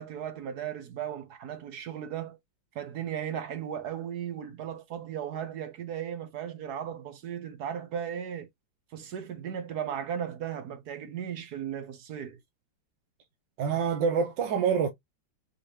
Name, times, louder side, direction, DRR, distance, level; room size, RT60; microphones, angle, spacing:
voice 1, 0.0-2.4 2.7-8.5 8.9-12.4, right 9 dB, 60° right, 1.4 m, -36 dB
voice 2, 13.6-14.9, right 6 dB, 80° right, 1.6 m, -26 dB
5.2 x 2.9 x 3.3 m
omnidirectional pair, 2.0 m